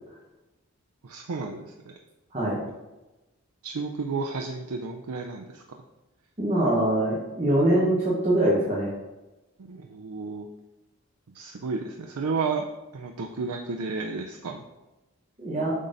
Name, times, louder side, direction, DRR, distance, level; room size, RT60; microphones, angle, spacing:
voice 1, 1.0-2.0 3.6-5.6 9.7-10.5 11.3-12.6 12.9-14.6, right 4 dB, 85° right, 2 dB, 0.5 m, -32 dB
voice 2, 6.4-8.9 15.4-15.7, right 1 dB, 30° right, -8 dB, 1.2 m, -23 dB
7.3 x 4.0 x 3.9 m, 1.1 s
head